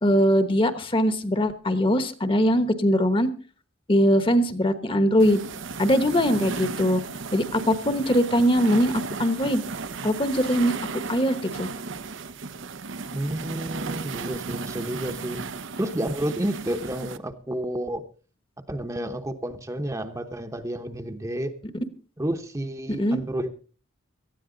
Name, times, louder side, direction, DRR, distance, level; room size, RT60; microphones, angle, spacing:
voice 1, 0.0-3.3 3.9-5.4 5.8-7.0 7.3-8.9 9.2-9.6 10.0-10.7 11.1-11.7 23.0-23.2, equal, 25° left, 12 dB, 1.1 m, -21 dB
sound 1, 5.2-17.2, right 4 dB, 70° right, 0.8 m, -35 dB
voice 2, 13.1-15.4 15.8-18.0 18.7-21.5 22.2-23.5, right 1 dB, 15° right, 6 dB, 0.9 m, -30 dB
18.0 x 13.5 x 3.9 m, 0.38 s
head